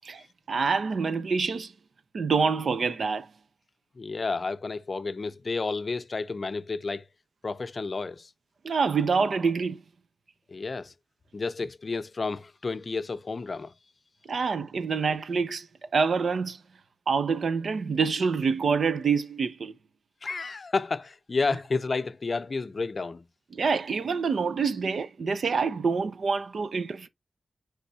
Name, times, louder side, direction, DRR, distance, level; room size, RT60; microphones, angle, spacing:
voice 1, 0.5-1.7 2.1-3.3 8.6-9.8 14.3-15.7 15.9-16.6 17.1-19.7 23.5-27.1, right 5 dB, 75° right, 0.7 m, -26 dB
voice 2, 4.0-7.0 7.4-8.3 10.5-10.9 11.3-13.7 20.2-23.2, left 4 dB, 45° left, 0.5 m, -31 dB
9.8 x 3.6 x 2.7 m
wide cardioid pair, 115°, 0 cm